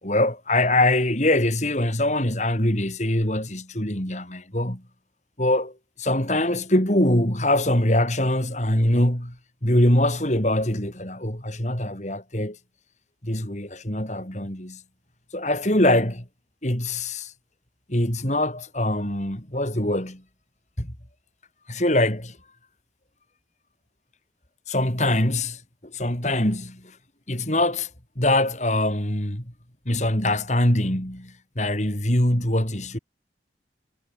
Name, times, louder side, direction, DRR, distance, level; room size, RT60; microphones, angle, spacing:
voice 1, 0.0-4.8 5.4-9.4 9.6-12.6 13.2-14.8 15.3-16.3 16.6-17.3 17.9-20.2 20.8-20.9 21.7-22.4 24.7-27.0 27.3-27.9 28.2-29.5 29.8-33.0, left 1 dB, 40° left, 4.8 m, -23 dB
head